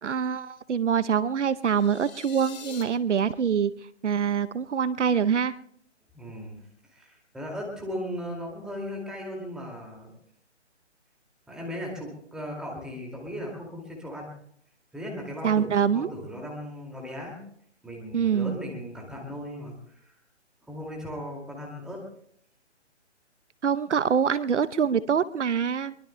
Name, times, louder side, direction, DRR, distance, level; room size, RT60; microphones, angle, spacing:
voice 1, 0.0-3.7 4.0-5.5 15.4-16.1 18.1-18.6 23.6-26.0, right 7 dB, 75° right, 16 dB, 0.8 m, -25 dB
sound 1, 1.6-2.8, left 6 dB, 35° left, 2.1 m, -44 dB
voice 2, 6.1-6.6 6.9-10.1 11.5-14.3 14.9-17.4 17.8-20.1 20.7-22.0, equal, ahead, -1 dB, 2.2 m, -37 dB
23.0 x 22.5 x 2.2 m, 0.65 s
hypercardioid pair, 155°, 35 cm